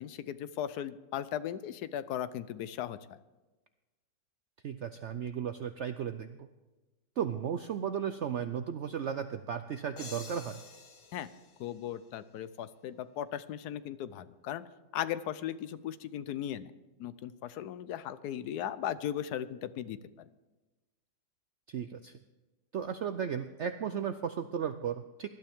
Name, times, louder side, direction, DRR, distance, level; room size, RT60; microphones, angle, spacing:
voice 1, 0.0-3.2 11.1-11.3 11.6-14.7 14.9-16.7 17.0-20.0, left 10 dB, 70° left, 14 dB, 1.2 m, -37 dB
voice 2, 4.6-6.5 7.2-10.6 21.7-22.1 22.7-25.3, right 8 dB, 70° right, 9 dB, 0.6 m, -35 dB
sound 1, 10.0-12.6, left 4 dB, 90° left, 2.2 m, -50 dB
19.0 x 12.0 x 3.6 m, 1.1 s
omnidirectional pair, 1.8 m